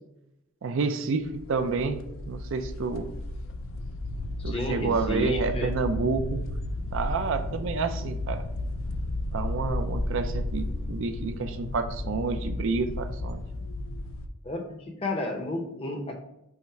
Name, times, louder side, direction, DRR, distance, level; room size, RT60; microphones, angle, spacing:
voice 1, 0.6-3.1 4.4-6.4 6.9-8.4 9.3-13.4, right 4 dB, 60° right, 9 dB, 0.4 m, -29 dB
sound 1, 1.2-14.3, left 1 dB, 60° left, 0.4 m, -33 dB
voice 2, 4.4-5.7 14.4-16.1, left 1 dB, 25° left, 3 dB, 0.6 m, -32 dB
5.5 x 2.1 x 4.6 m, 0.87 s
head